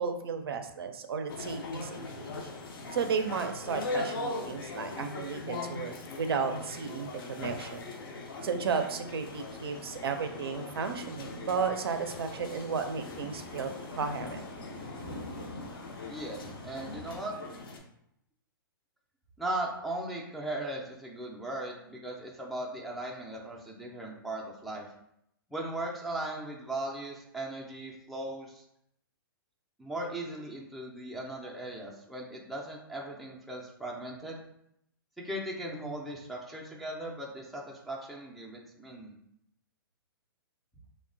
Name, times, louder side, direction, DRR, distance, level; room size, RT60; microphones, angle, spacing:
voice 1, 0.0-2.3 2.9-7.8 8.4-13.7 14.0-14.4, right 5 dB, 80° right, 6 dB, 0.4 m, -33 dB
sound 1, 1.3-17.8, left 3 dB, 65° left, 0.5 m, -41 dB
sound 2, 9.1-17.2, left 2 dB, 90° left, 0.9 m, -46 dB
voice 2, 16.1-17.4 19.4-24.9 25.5-28.6 29.8-34.4 35.2-39.2, right 1 dB, ahead, -3 dB, 0.3 m, -38 dB
2.8 x 2.0 x 2.5 m, 0.77 s
hypercardioid pair, 130°, 12 cm